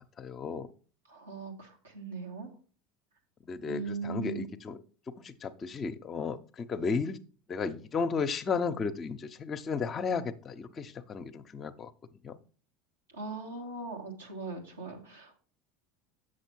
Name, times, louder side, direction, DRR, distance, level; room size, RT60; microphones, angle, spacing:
voice 1, 0.2-0.7 3.5-4.8 5.1-7.2 7.5-11.9 12.2-12.4, left 5 dB, 35° left, 11 dB, 0.8 m, -34 dB
voice 2, 1.1-2.5 3.7-4.5 13.1-15.4, right 4 dB, 80° right, 0 dB, 2.0 m, -39 dB
8.0 x 6.4 x 4.5 m, 0.39 s
figure-of-eight pair, 70°, 0 cm